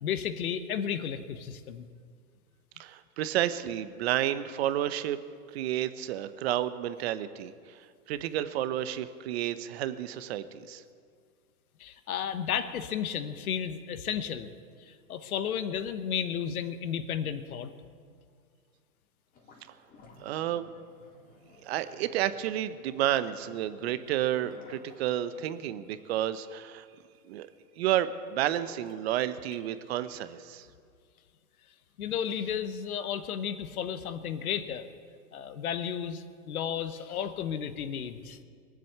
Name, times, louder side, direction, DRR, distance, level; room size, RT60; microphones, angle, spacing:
voice 1, 0.0-1.9 11.8-14.5 14.9-17.7 32.0-34.9 35.3-38.4, left 8 dB, 65° left, 11 dB, 1.3 m, -33 dB
voice 2, 2.8-5.2 5.5-7.8 8.1-10.8 20.2-20.7 21.6-26.9 27.2-27.5 27.8-30.7, right 12 dB, 45° right, 13 dB, 0.9 m, -31 dB
sound 1, 19.3-30.3, left 3 dB, 20° left, 2.0 m, -57 dB
22.0 x 7.8 x 8.0 m, 2.1 s
hypercardioid pair, 140°, 46 cm